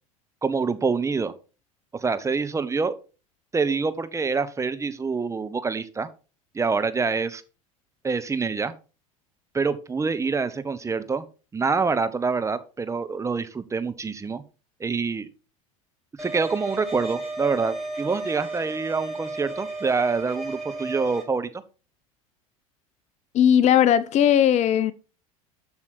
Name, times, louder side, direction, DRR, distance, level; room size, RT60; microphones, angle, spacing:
voice 1, 0.4-1.3 1.9-2.9 3.5-6.1 6.5-7.4 8.0-8.7 9.5-11.2 11.5-14.4 14.8-15.3 16.2-21.5, right 4 dB, 15° right, 0.9 m, -26 dB
sound 1, 16.2-21.2, right 2 dB, ahead, 3.3 m, -33 dB
voice 2, 23.3-24.9, left 9 dB, 40° left, 0.6 m, -18 dB
7.5 x 6.1 x 4.2 m
hypercardioid pair, 80°, 18 cm